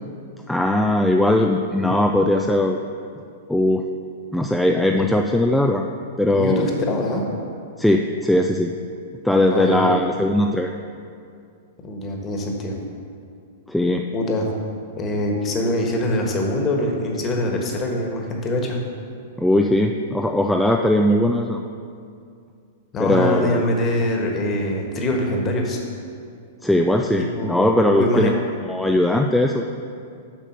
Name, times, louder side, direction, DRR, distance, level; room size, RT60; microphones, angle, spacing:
voice 1, 0.5-2.8 3.5-3.8 4.3-5.8 6.2-6.7 7.8-8.7 9.2-10.7 13.7-14.0 19.4-21.6 23.0-23.6 26.6-28.3 28.7-29.6, left 1 dB, 5° left, 2 dB, 0.4 m, -19 dB
voice 2, 6.3-7.2 9.5-9.9 11.8-12.8 14.1-14.5 15.0-18.8 22.9-25.8 27.2-28.3, left 1 dB, 30° left, 1 dB, 1.5 m, -23 dB
7.4 x 5.1 x 6.6 m, 2.4 s
hypercardioid pair, 115°, 0 cm